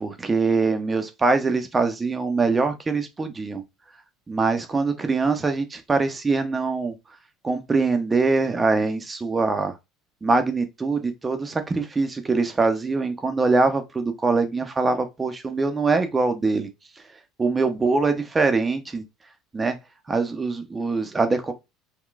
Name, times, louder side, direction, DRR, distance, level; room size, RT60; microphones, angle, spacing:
voice 1, 0.0-3.6 4.3-6.9 7.4-9.7 10.2-16.7 17.4-19.0 19.5-19.7 20.1-21.5, right 3 dB, 20° right, 0.7 m, -23 dB
3.7 x 2.3 x 2.4 m
hypercardioid pair, 70°, 0 cm